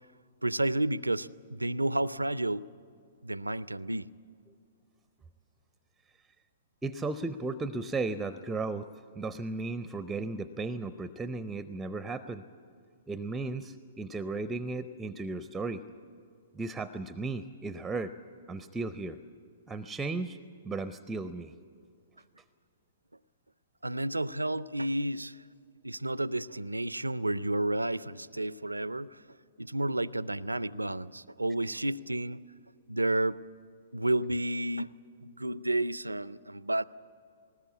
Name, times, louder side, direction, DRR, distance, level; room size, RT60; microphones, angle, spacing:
voice 1, 0.4-2.7 3.2-4.1 23.8-25.4 25.8-29.2 29.6-32.4 32.9-33.4 33.9-36.8, right 1 dB, 85° right, 19 dB, 0.4 m, -31 dB
voice 2, 6.8-8.9 9.2-12.4 13.1-15.8 16.5-18.1 18.5-19.2 19.7-20.4 20.6-21.5, right 3 dB, 10° right, 13 dB, 0.5 m, -35 dB
19.5 x 19.5 x 8.3 m, 2.4 s
figure-of-eight pair, 115°, 0 cm